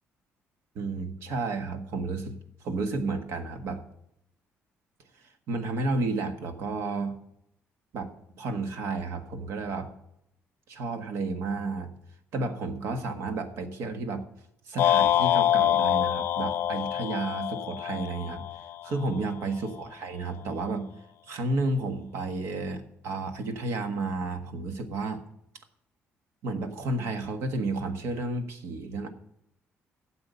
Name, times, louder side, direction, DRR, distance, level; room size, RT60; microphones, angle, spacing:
voice 1, 0.7-2.3 2.6-3.8 5.2-7.2 7.9-8.1 8.4-9.9 10.7-11.9 12.3-14.3 14.6-18.4 18.8-20.9 21.3-25.2 26.4-29.1, right 3 dB, 70° right, 7 dB, 1.5 m, -32 dB
sound 1, 14.8-19.1, left 11 dB, 55° left, 0.3 m, -25 dB
12.5 x 7.9 x 5.5 m, 0.76 s
cardioid pair, 170°, 5 cm